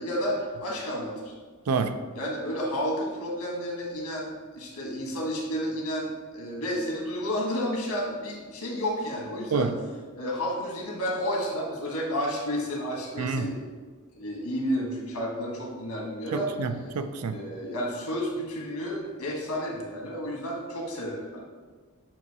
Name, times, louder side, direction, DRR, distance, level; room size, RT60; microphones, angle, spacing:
voice 1, 0.0-1.3 2.1-9.7 10.1-13.6 14.1-16.5 17.2-21.4, equal, 85° left, -1 dB, 1.5 m, -31 dB
voice 2, 1.7-2.0 9.5-9.7 13.2-13.5 16.3-17.4, right 4 dB, 90° right, 9 dB, 0.5 m, -28 dB
7.6 x 2.8 x 4.7 m, 1.4 s
head